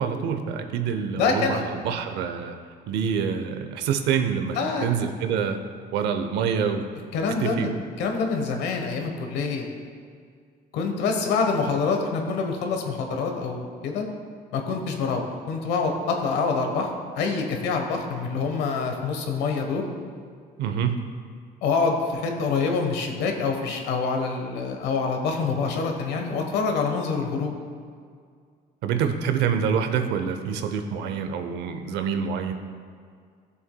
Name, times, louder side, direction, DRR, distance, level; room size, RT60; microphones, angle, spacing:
voice 1, 0.0-2.6 2.9-5.6 5.9-6.9 7.4-7.8 20.6-21.0 28.8-32.5, right 7 dB, 85° right, 7 dB, 0.7 m, -26 dB
voice 2, 1.2-1.6 4.5-4.9 7.1-7.7 8.0-9.7 10.7-14.1 14.5-16.9 17.1-19.8 21.6-27.5, left 4 dB, 85° left, 3 dB, 1.2 m, -26 dB
14.5 x 6.9 x 2.3 m, 2.1 s
cardioid pair, 110°, 17 cm